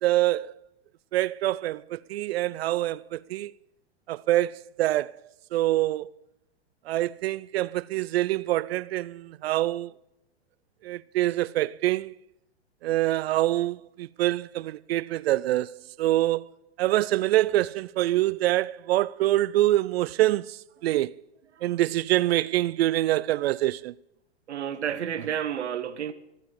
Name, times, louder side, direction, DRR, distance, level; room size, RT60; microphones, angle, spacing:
voice 1, 0.0-0.5 1.1-3.5 4.1-5.1 5.5-6.1 6.9-9.9 10.8-12.1 12.8-16.5 16.8-21.1 21.6-23.9, right 15 dB, 65° right, 0.5 m, -25 dB
voice 2, 24.5-26.1, right 9 dB, 80° right, 1.1 m, -31 dB
15.0 x 8.8 x 7.2 m
hypercardioid pair, 105°, 33 cm